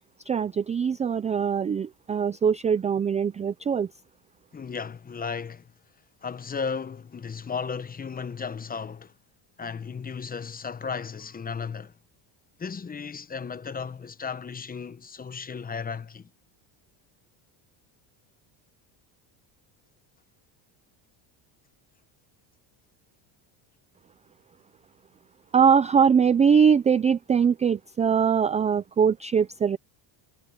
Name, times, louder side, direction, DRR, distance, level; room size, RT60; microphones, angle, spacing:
voice 1, 0.3-3.9 25.5-29.8, right 7 dB, 15° right, 0.3 m, -22 dB
voice 2, 4.5-5.7 6.2-9.1 9.6-12.0 12.6-16.3, left 5 dB, 20° left, 0.8 m, -35 dB
cardioid pair, 135°, 49 cm